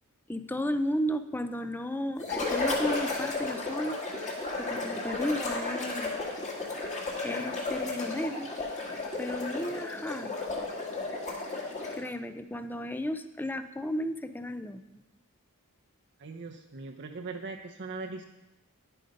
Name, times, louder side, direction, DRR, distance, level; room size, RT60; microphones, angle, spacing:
voice 1, 0.3-4.3 4.6-6.2 7.2-8.5 9.2-10.4 11.9-15.0, equal, 10° left, 10 dB, 0.4 m, -34 dB
sound 1, 2.2-12.1, left 3 dB, 35° left, 1.7 m, -33 dB
voice 2, 16.2-18.3, right 3 dB, 55° right, 3 dB, 0.7 m, -40 dB
10.0 x 7.7 x 5.2 m, 0.97 s
head